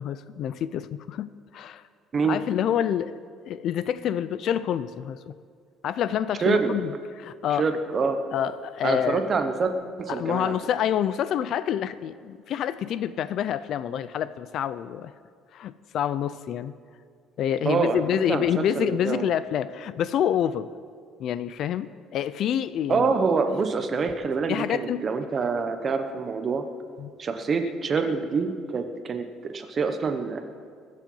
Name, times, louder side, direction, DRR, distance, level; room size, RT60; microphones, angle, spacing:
voice 1, 0.0-1.8 2.2-3.2 3.5-5.3 5.8-6.9 7.2-7.7 8.3-9.2 10.2-15.1 15.5-16.7 17.4-20.7 21.2-23.1 24.5-25.0 27.0-27.1, left 10 dB, 45° left, 15 dB, 0.4 m, -27 dB
voice 2, 6.4-6.7 7.5-8.2 8.8-10.6 17.6-19.4 22.9-26.7 27.2-30.4, right 4 dB, 25° right, 7 dB, 0.9 m, -26 dB
22.0 x 7.5 x 5.5 m, 2.1 s
cardioid pair, 175°, 0 cm